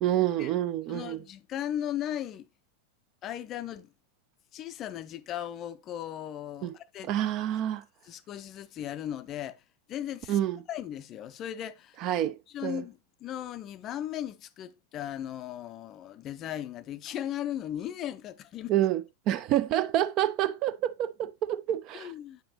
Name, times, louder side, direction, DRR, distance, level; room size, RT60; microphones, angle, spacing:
voice 1, 0.0-1.2 6.6-6.7 7.1-7.8 10.3-10.6 12.0-12.8 18.7-22.1, right 12 dB, 40° right, 0.5 m, -28 dB
voice 2, 0.9-2.5 3.2-3.9 4.5-7.1 8.0-9.6 9.9-10.4 10.7-12.0 12.5-18.8 21.9-22.4, left 11 dB, 30° left, 0.5 m, -37 dB
8.5 x 5.8 x 2.9 m
figure-of-eight pair, 90°, 0 cm